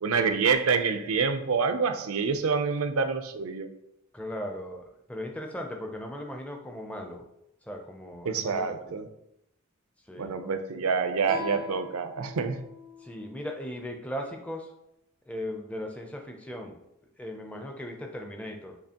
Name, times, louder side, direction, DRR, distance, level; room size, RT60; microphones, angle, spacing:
voice 1, 0.0-3.7 8.3-9.0 10.2-12.6, right 5 dB, 70° right, 8 dB, 0.5 m, -27 dB
voice 2, 4.1-7.3 7.6-8.9 10.1-10.5 13.0-14.7 15.3-16.8 17.2-18.8, left 1 dB, 5° left, 3 dB, 0.4 m, -38 dB
Guitar, 11.2-14.5, left 4 dB, 85° left, 1.7 m, -44 dB
6.6 x 2.8 x 2.8 m, 0.81 s
head